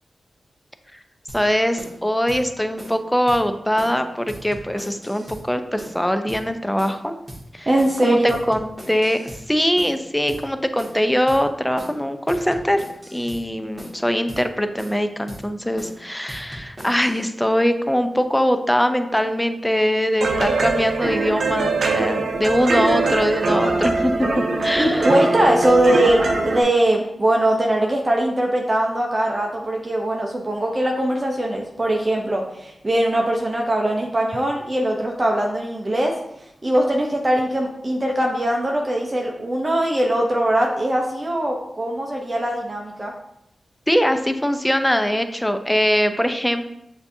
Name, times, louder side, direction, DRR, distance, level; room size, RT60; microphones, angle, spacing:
voice 1, 1.3-7.2 7.5-7.7 8.0-9.2 9.5-12.8 13.1-24.1 24.6-25.1 43.9-46.7, equal, 10° left, 8 dB, 0.5 m, -22 dB
sound 1, 1.3-1.4 1.8-2.0 2.3-2.4 2.8-3.0 3.3-3.4 3.8-4.0 4.3-5.4 5.8-6.0 6.3-6.4 6.8-7.0 7.3-7.4 7.8-8.0 8.3-9.4 9.8-10.0 10.3-10.4 10.8-11.0 11.3-11.4 11.8-12.0 12.3-13.4 13.8-14.0 14.3-14.4 14.8-15.0 15.3-15.4 15.8-16.0 16.3-17.3, equal, 15° right, 1.6 m, -39 dB
voice 2, 7.7-8.3 24.8-26.2 26.5-36.2 36.6-43.1, right 1 dB, 35° right, 0 dB, 0.6 m, -21 dB
sound 2, 20.2-26.6, right 3 dB, 85° right, 0.6 m, -22 dB
6.7 x 2.7 x 2.7 m, 0.80 s
cardioid pair, 45°, 0 cm